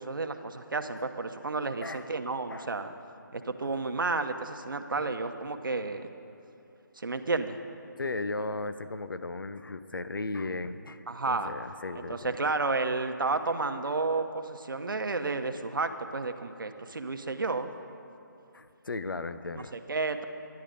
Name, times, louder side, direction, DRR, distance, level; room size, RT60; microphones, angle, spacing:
voice 1, 0.0-2.9 3.3-6.1 7.0-7.6 11.1-11.5 11.9-17.7 19.5-20.2, right 3 dB, 75° right, 7 dB, 0.9 m, -31 dB
voice 2, 8.0-12.4 18.5-19.8, left 3 dB, 80° left, 11 dB, 0.7 m, -36 dB
12.5 x 10.5 x 5.2 m, 2.8 s
figure-of-eight pair, 155°, 11 cm